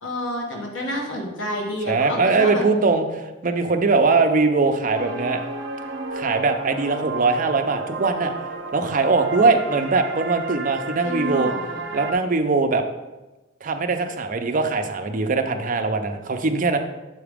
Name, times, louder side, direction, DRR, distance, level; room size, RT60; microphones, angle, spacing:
voice 1, 0.0-2.6 11.0-11.8, left 1 dB, 80° left, -1 dB, 1.2 m, -29 dB
voice 2, 1.9-5.4 6.1-8.3 8.7-11.5 11.9-12.8 13.6-16.8, right 3 dB, 45° right, 6 dB, 0.6 m, -21 dB
sound 1, 4.9-12.1, right 3 dB, 80° right, 0.8 m, -32 dB
7.8 x 4.8 x 3.5 m, 1.1 s
head